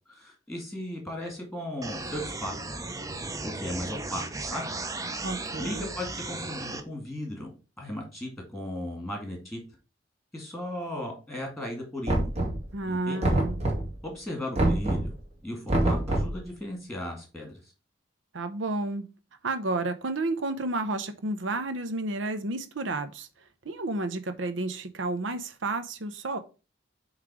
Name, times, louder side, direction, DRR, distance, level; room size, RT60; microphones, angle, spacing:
voice 1, 0.1-2.5 3.4-4.7 5.6-9.6 10.3-12.3 12.8-13.2 14.0-15.2 15.4-17.7, left 1 dB, ahead, 1 dB, 2.1 m, -36 dB
sound 1, 1.8-6.8, right 2 dB, 20° right, 0.7 m, -35 dB
voice 2, 5.2-5.9 12.7-13.6 18.3-19.1 19.4-23.3 23.6-26.4, right 2 dB, 75° right, 10 dB, 0.7 m, -31 dB
Knock, 12.1-12.8 13.2-14.0 14.6-15.2 15.7-16.4, right 1 dB, 35° right, 1.9 m, -25 dB
7.5 x 3.2 x 4.7 m, 0.32 s
head